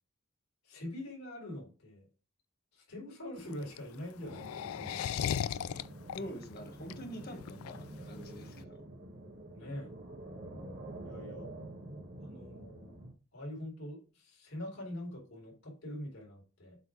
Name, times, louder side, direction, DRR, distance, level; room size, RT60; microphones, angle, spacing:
voice 1, 0.6-2.1 2.7-5.5 9.5-9.9 11.0-11.5 12.2-13.0 13.3-16.8, left 1 dB, 90° left, -2 dB, 4.0 m, -44 dB
sound 1, 3.4-8.6, left 9 dB, 75° left, 0.3 m, -37 dB
sound 2, 4.2-13.1, right 1 dB, 50° right, 1.7 m, -47 dB
voice 2, 6.1-8.8, equal, 50° left, 3 dB, 1.7 m, -45 dB
8.1 x 3.8 x 4.9 m, 0.36 s
head